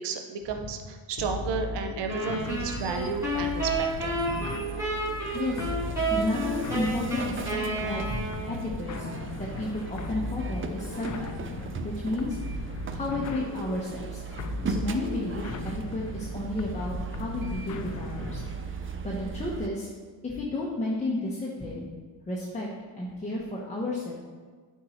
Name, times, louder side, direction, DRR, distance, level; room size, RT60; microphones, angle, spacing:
voice 1, 0.0-4.1, right 5 dB, 65° right, 5 dB, 0.8 m, -32 dB
sound 1, 1.2-18.8, left 4 dB, 40° left, 0.6 m, -38 dB
sound 2, 2.1-8.7, right 1 dB, 5° right, 2.2 m, -31 dB
sound 3, 2.4-19.7, right 6 dB, 30° right, 0.5 m, -38 dB
voice 2, 5.3-5.7 6.1-8.2 8.5-9.1 9.4-19.9 20.2-21.9 22.3-22.7 22.9-24.1, left 2 dB, 15° left, -4 dB, 1.2 m, -32 dB
8.4 x 4.8 x 4.4 m, 1.5 s
cardioid pair, 105°, 45 cm